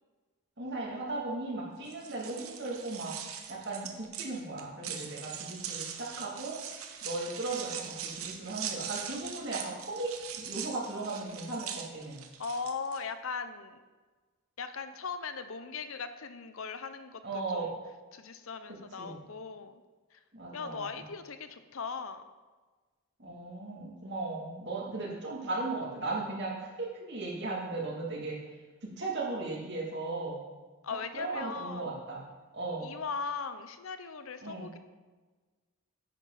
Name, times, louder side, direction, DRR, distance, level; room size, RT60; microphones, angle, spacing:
voice 1, 0.6-6.6 7.0-10.1 10.4-12.2 17.2-17.7 19.0-19.2 20.3-21.1 23.2-30.4 31.1-32.2 32.5-32.9 34.4-34.7, right 2 dB, 50° right, -3 dB, 2.7 m, -37 dB
sound 1, 1.8-13.0, right 8 dB, 80° right, 1.0 m, -41 dB
voice 2, 12.4-13.8 14.6-17.7 18.1-19.8 20.1-20.2 20.5-22.2 30.8-31.9 32.8-34.8, left 5 dB, 70° left, 10 dB, 0.7 m, -39 dB
10.5 x 9.2 x 4.2 m, 1.3 s
head